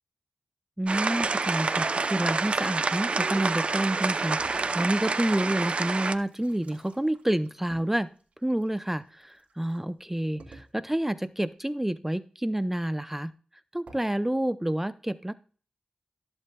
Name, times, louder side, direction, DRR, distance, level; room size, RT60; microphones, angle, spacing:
voice 1, 0.8-8.1 8.4-13.3 13.7-15.3, right 1 dB, 10° right, 13 dB, 0.6 m, -29 dB
sound 1, 0.9-6.1, right 4 dB, 60° right, 0.6 m, -28 dB
sound 2, 4.4-5.3 5.8-9.8 10.4-11.1 13.9-14.0, right 3 dB, 80° right, 2.6 m, -51 dB
13.0 x 7.9 x 2.3 m, 0.39 s
cardioid pair, 45°, 2 cm